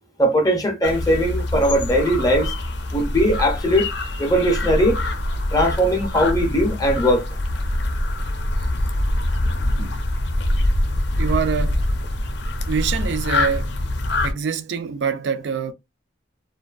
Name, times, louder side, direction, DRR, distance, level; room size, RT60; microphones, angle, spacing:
voice 1, 0.2-2.5 2.9-3.9 4.2-5.0 5.5-7.2, equal, 20° left, 0.5 m, -19 dB
sound 1, 0.8-14.3, left 1 dB, 70° left, 0.5 m, -24 dB
voice 2, 11.2-11.8 12.7-13.7 14.2-15.7, right 6 dB, 70° right, 0.4 m, -25 dB
2.5 x 2.3 x 2.3 m
head